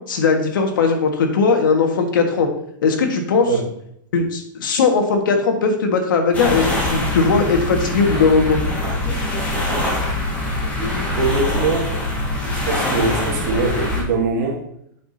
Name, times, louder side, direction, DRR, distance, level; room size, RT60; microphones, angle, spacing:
voice 1, 0.1-2.5 2.8-3.5 4.1-8.6 9.3-9.4, left 4 dB, 75° left, 4 dB, 1.6 m, -18 dB
sound 1, 6.3-14.0, left 1 dB, 15° left, 1.7 m, -23 dB
voice 2, 11.2-11.9 12.5-14.6, right 3 dB, 55° right, -1 dB, 2.1 m, -22 dB
8.3 x 5.9 x 2.8 m, 0.72 s
supercardioid pair, 160°, 11 cm